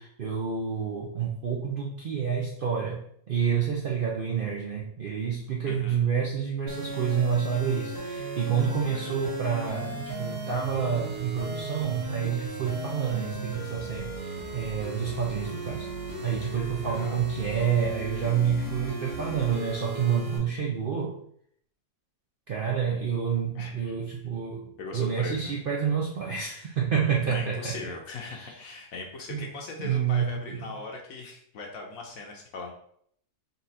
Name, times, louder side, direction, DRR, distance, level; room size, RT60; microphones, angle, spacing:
voice 1, 0.0-3.0 3.3-15.9 16.2-21.2 22.5-27.7 28.3-28.6 29.3-29.5 29.8-30.8, right 7 dB, 80° right, -2 dB, 0.4 m, -28 dB
voice 2, 5.7-6.0 8.7-9.2 16.8-17.2 23.5-23.9 24.8-25.6 27.2-32.7, left 3 dB, 65° left, 1 dB, 1.0 m, -40 dB
sound 1, 6.7-20.4, right 2 dB, 45° right, 1.2 m, -36 dB
4.0 x 2.4 x 4.0 m, 0.66 s
omnidirectional pair, 1.7 m